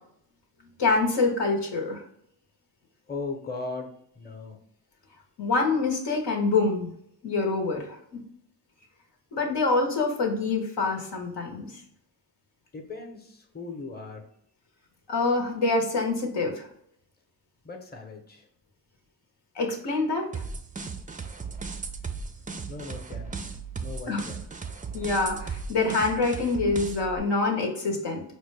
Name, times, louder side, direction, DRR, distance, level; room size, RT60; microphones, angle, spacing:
voice 1, 0.8-2.0 5.4-6.9 7.2-8.0 9.3-11.7 15.1-16.7 19.6-20.2 24.1-24.2 24.9-28.2, left 3 dB, 75° left, 1 dB, 0.9 m, -25 dB
voice 2, 3.1-4.6 12.7-14.3 17.6-18.5 22.7-24.5, left 3 dB, 25° left, 3 dB, 0.8 m, -38 dB
sound 1, 20.3-27.2, right 5 dB, 20° right, 0.4 m, -36 dB
4.3 x 2.1 x 3.3 m, 0.71 s
cardioid pair, 45°, 42 cm